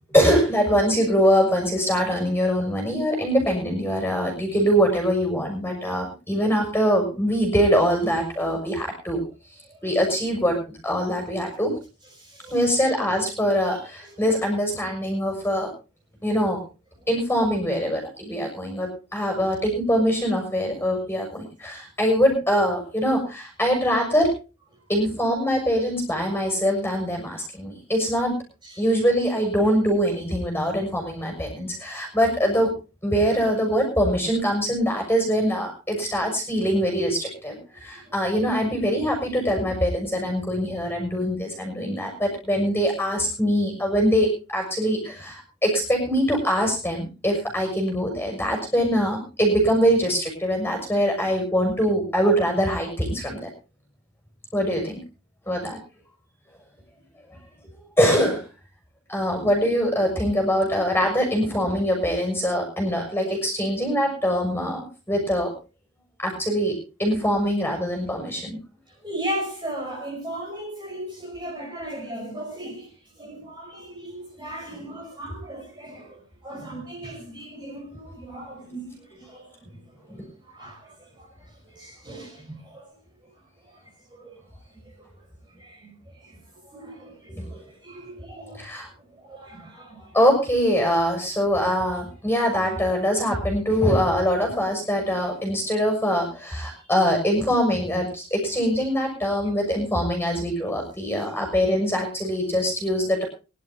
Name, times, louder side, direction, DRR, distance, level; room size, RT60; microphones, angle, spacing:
voice 1, 0.1-9.2 9.8-11.7 12.5-15.7 16.2-16.6 17.1-24.3 24.9-28.4 28.8-32.7 33.0-53.5 54.5-55.0 55.5-55.8 58.0-58.4 59.1-65.5 66.2-68.6 80.1-80.3 87.3-87.5 88.6-88.9 90.1-103.2, equal, 10° left, 2 dB, 6.5 m, -23 dB
voice 2, 12.2-12.5 28.6-28.8 38.0-38.1 69.0-72.9 73.2-79.8 80.5-81.3 81.7-82.9 84.1-84.3 85.0-85.1 85.5-85.9 86.2-86.4 86.7-88.7 89.1-90.1, right 1 dB, 20° right, -1 dB, 5.2 m, -37 dB
24.0 x 12.0 x 3.0 m, 0.32 s
head